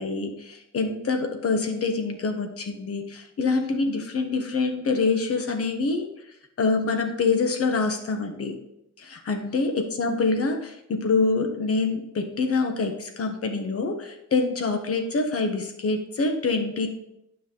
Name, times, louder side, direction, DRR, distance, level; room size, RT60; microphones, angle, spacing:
voice 1, 0.0-6.1 6.6-8.6 9.0-9.7 10.0-16.9, left 3 dB, 50° left, 5 dB, 1.4 m, -25 dB
9.4 x 5.8 x 3.9 m, 0.83 s
cardioid pair, 90°, 30 cm